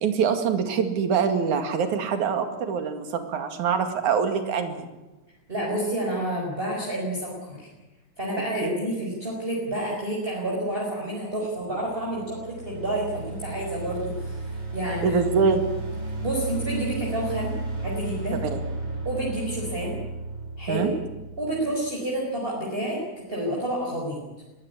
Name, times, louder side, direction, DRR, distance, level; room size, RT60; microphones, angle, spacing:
voice 1, 0.0-4.9 8.6-8.8 15.0-15.6 18.4-18.6 20.7-20.9, right 6 dB, 75° right, 7 dB, 3.6 m, -24 dB
voice 2, 5.5-7.7 8.2-15.2 16.2-17.5 17.8-18.4 19.0-20.0 20.6-20.9 21.4-24.2, right 1 dB, 15° right, -4 dB, 5.1 m, -29 dB
sound 1, 11.5-21.7, right 2 dB, 35° right, 5.5 m, -34 dB
21.5 x 16.0 x 9.9 m, 1.1 s
omnidirectional pair, 3.5 m